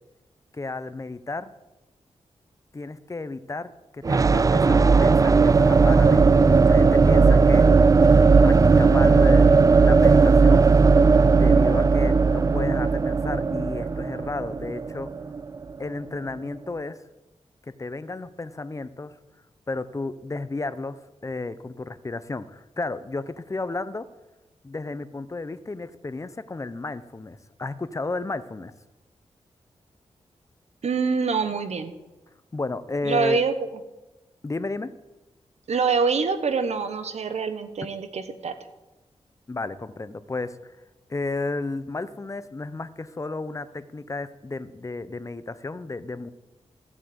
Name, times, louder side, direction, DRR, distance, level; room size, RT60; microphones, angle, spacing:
voice 1, 0.5-1.5 2.7-7.9 8.4-10.8 11.3-15.1 15.8-17.0 17.6-19.1 19.7-24.1 24.6-28.7 32.5-33.4 34.4-34.9 39.5-40.7 41.1-46.3, left 3 dB, 25° left, 13 dB, 0.8 m, -33 dB
sound 1, 4.0-15.8, right 4 dB, 30° right, 0.4 m, -17 dB
voice 2, 30.8-31.9 33.0-33.5 35.7-38.5, right 5 dB, 75° right, 9 dB, 1.3 m, -25 dB
14.0 x 7.4 x 8.1 m, 1.1 s
wide cardioid pair, 95°, 12 cm